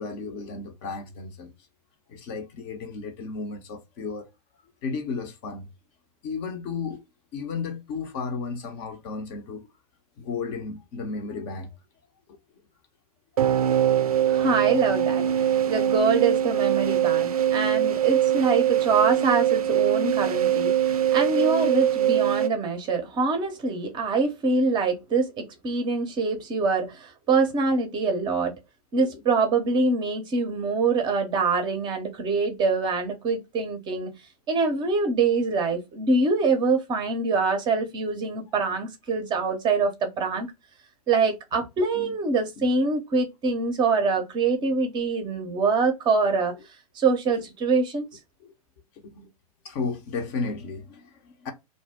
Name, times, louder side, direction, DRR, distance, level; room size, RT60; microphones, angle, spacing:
voice 1, 0.0-1.5 2.1-4.3 4.8-5.7 6.2-7.0 7.3-9.7 10.2-11.7 12.3-12.4 29.1-29.2 41.9-42.1 42.6-42.7 48.4-48.5 49.0-49.3 49.6-51.5, left 4 dB, 35° left, 0.7 m, -33 dB
sound 1, 13.4-22.5, right 11 dB, 70° right, 0.4 m, -22 dB
voice 2, 14.2-28.5 28.9-34.1 34.5-40.5 41.1-46.5 46.9-48.1, right 4 dB, 25° right, 0.6 m, -24 dB
2.6 x 2.0 x 3.4 m
figure-of-eight pair, 100°, 20 cm